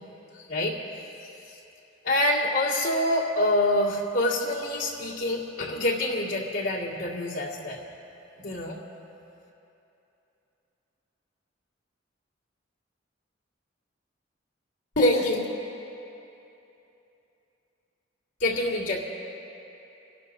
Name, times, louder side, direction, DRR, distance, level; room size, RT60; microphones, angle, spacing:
voice 1, 0.3-0.8 2.0-7.8 8.4-8.8 15.0-15.4 18.4-19.1, left 1 dB, 75° left, -5 dB, 2.1 m, -26 dB
28.0 x 11.5 x 2.7 m, 2.9 s
head